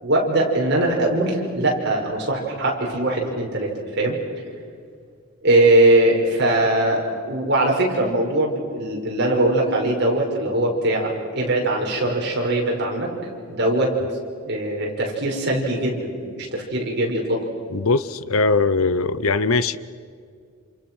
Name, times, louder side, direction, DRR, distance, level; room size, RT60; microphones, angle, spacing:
voice 1, 0.0-4.2 5.4-13.1 13.5-13.9 14.5-17.4, right 1 dB, 50° right, -1 dB, 5.8 m, -21 dB
voice 2, 17.7-19.8, left 3 dB, 70° left, 14 dB, 0.8 m, -20 dB
29.0 x 28.0 x 6.3 m, 2.2 s
head